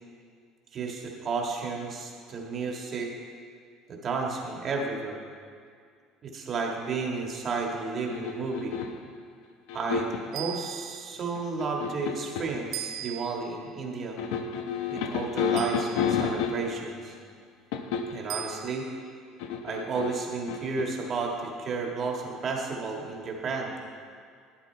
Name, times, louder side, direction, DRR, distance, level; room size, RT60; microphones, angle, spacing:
voice 1, 0.7-3.1 3.9-5.2 6.2-8.8 9.7-14.2 14.9-17.2 18.1-18.9 19.6-23.7, right 4 dB, 30° right, 0 dB, 1.6 m, -32 dB
sound 1, 8.1-9.1 9.7-10.3 11.3-12.6 14.2-16.9 17.7-18.3 19.4-20.8, left 6 dB, 85° left, 0.9 m, -30 dB
sound 2, 10.3-11.2 12.7-13.6 15.6-16.3 18.3-19.0, right 11 dB, 60° right, 0.5 m, -39 dB
12.0 x 9.7 x 4.5 m, 2.2 s
cardioid pair, 160°, 0 cm